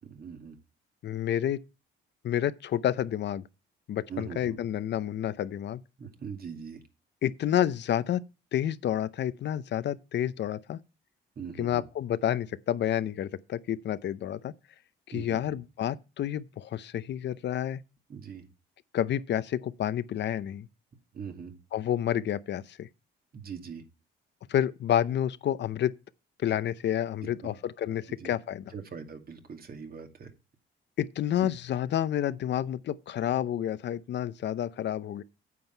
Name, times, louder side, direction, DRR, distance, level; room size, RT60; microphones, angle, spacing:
voice 1, 0.0-0.6 4.1-4.6 6.0-6.8 11.4-11.8 15.1-15.4 18.1-18.4 21.1-21.5 23.3-23.8 27.2-27.5 28.1-28.3 28.7-30.3 31.4-31.5, right 6 dB, 50° right, 2.3 m, -41 dB
voice 2, 1.0-1.6 2.2-3.4 3.9-5.8 7.2-8.2 8.5-10.8 11.6-14.5 15.1-17.8 18.9-20.7 21.7-22.9 24.5-25.9 26.4-28.7 31.0-35.2, left 10 dB, 65° left, 0.7 m, -29 dB
9.4 x 7.8 x 4.5 m
cardioid pair, 90°, 20 cm